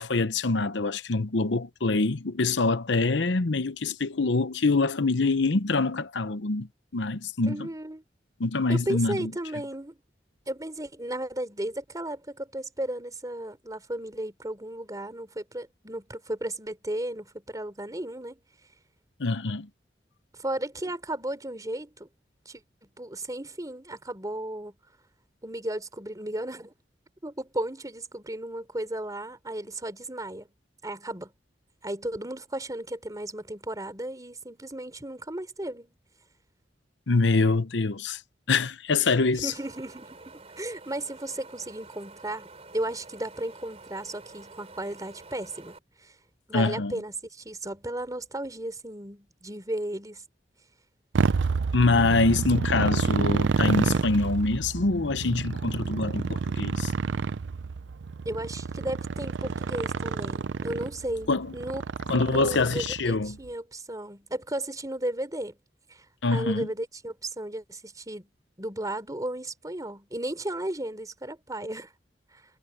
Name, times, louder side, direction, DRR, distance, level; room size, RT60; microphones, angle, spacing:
voice 1, 0.0-6.7 6.9-7.7 8.4-9.3 19.2-19.7 37.1-38.2 38.5-39.5 46.5-46.9 51.7-56.9 61.3-61.5 62.1-63.4 66.2-66.7, left 3 dB, 85° left, 0.9 m, -25 dB
voice 2, 7.5-8.0 8.7-10.0 10.5-18.4 20.3-22.1 22.5-22.6 23.0-24.8 25.4-26.7 27.2-30.5 30.8-31.3 31.8-35.9 39.4-42.5 42.7-46.2 46.5-50.2 58.3-61.8 62.3-65.6 65.9-66.1 66.3-68.3 68.6-71.9 72.3-72.4, right 1 dB, 20° right, 3.7 m, -34 dB
Wind, 39.5-45.8, right 3 dB, 35° right, 3.9 m, -49 dB
Motorcycle, 51.1-63.2, right 4 dB, 85° right, 0.5 m, -29 dB
head